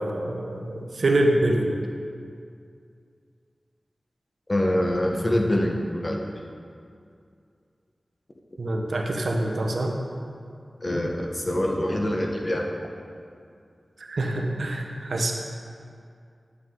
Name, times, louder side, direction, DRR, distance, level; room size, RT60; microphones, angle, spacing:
voice 1, 0.0-1.8 8.6-9.9 14.0-15.3, right 1 dB, 85° right, 1 dB, 1.0 m, -25 dB
voice 2, 4.5-6.2 10.8-12.7, left 1 dB, 40° left, 0 dB, 1.1 m, -25 dB
9.4 x 8.1 x 3.8 m, 2.4 s
wide cardioid pair, 60°, 0 cm